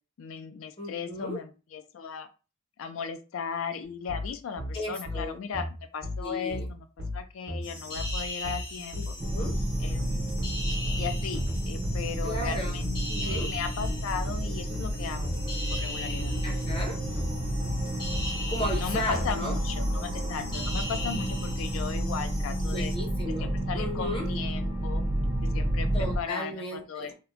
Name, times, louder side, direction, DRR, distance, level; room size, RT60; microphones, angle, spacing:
voice 1, 0.2-2.3 2.8-5.7 5.9-6.9 7.1-9.1 9.8-10.2 10.9-16.3 18.7-22.9 23.4-25.0 25.3-27.1, left 6 dB, 75° left, 9 dB, 0.3 m, -36 dB
voice 2, 0.8-1.4 4.7-5.4 6.2-6.7 8.9-9.5 12.2-12.8 13.1-13.5 16.4-17.0 18.5-19.6 22.7-24.3 25.9-27.1, left 1 dB, 25° left, 0 dB, 0.6 m, -35 dB
sound 1, 4.1-19.3, left 1 dB, 65° right, 0.8 m, -36 dB
sound 2, 7.6-23.0, left 1 dB, 50° left, 0.9 m, -39 dB
sound 3, 9.2-26.2, right 1 dB, 25° right, 0.4 m, -31 dB
2.8 x 2.1 x 2.4 m, 0.33 s
head